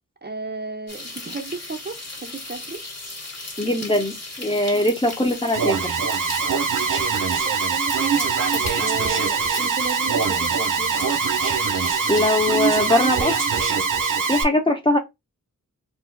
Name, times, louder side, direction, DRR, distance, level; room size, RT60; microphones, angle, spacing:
voice 1, 0.2-2.8 7.4-11.0, right 3 dB, 30° right, 0.6 m, -34 dB
sound 1, 0.9-13.7, left 2 dB, 50° left, 1.4 m, -36 dB
voice 2, 3.6-6.0 12.1-13.6 14.2-15.0, left 1 dB, 15° left, 0.7 m, -21 dB
Alarm, 5.5-14.4, right 5 dB, 70° right, 0.7 m, -23 dB
2.6 x 2.3 x 3.6 m
wide cardioid pair, 50°, 32 cm